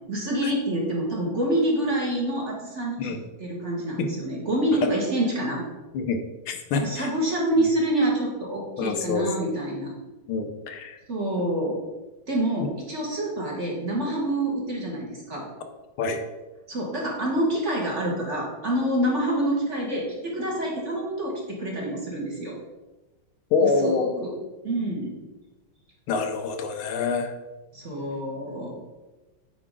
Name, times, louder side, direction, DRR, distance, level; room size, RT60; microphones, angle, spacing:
voice 1, 0.1-3.1 3.4-5.6 6.7-9.9 11.1-11.8 12.3-15.5 16.7-22.6 23.6-24.3 24.6-25.1 27.7-28.7, right 1 dB, 35° right, -3 dB, 1.8 m, -27 dB
voice 2, 6.5-7.1 8.8-9.3 10.3-11.0 12.6-12.7 16.0-16.2 23.5-24.1 26.1-27.3, left 4 dB, 80° left, 5 dB, 1.6 m, -26 dB
8.6 x 5.1 x 3.7 m, 1.1 s
omnidirectional pair, 2.3 m